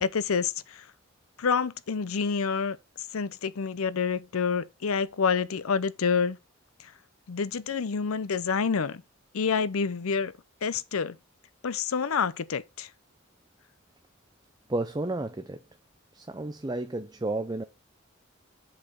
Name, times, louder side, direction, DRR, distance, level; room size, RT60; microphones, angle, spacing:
voice 1, 0.0-0.8 1.4-2.8 3.1-6.4 7.3-9.0 9.3-10.3 10.6-11.2 11.6-12.9, left 5 dB, 90° left, 0.6 m, -28 dB
voice 2, 14.7-15.6 16.1-17.6, right 2 dB, 20° right, 0.5 m, -32 dB
7.7 x 4.5 x 5.6 m
head